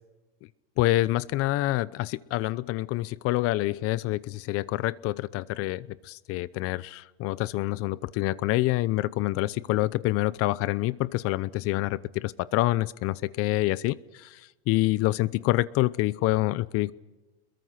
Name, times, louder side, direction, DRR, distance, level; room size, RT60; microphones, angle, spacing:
voice 1, 0.8-14.4 14.7-16.9, left 18 dB, 50° left, 19 dB, 0.8 m, -27 dB
27.0 x 22.0 x 5.9 m, 1.1 s
supercardioid pair, 110°, 30 cm